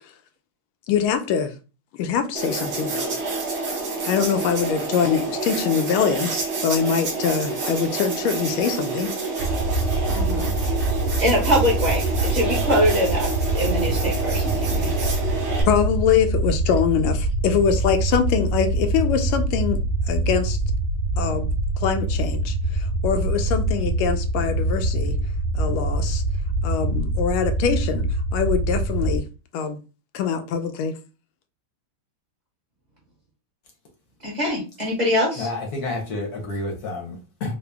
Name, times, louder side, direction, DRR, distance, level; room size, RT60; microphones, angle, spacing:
voice 1, 0.9-1.5 2.0-3.2 4.0-6.3 6.6-9.1 15.7-19.8 20.1-20.6 21.2-21.5 21.8-25.1 25.5-26.2 26.6-28.0 28.3-29.2 29.5-29.8 30.1-30.9, left 7 dB, 80° left, 1.4 m, -23 dB
sound 1, 2.3-15.6, right 3 dB, 60° right, 0.7 m, -28 dB
sound 2, 9.4-29.2, right 2 dB, 80° right, 0.9 m, -24 dB
voice 2, 10.1-10.5 11.2-13.3 13.5-14.9 34.2-35.5, equal, 30° right, 0.9 m, -23 dB
voice 3, 35.4-37.5, left 2 dB, 60° left, 1.1 m, -29 dB
3.8 x 2.0 x 3.3 m
omnidirectional pair, 2.3 m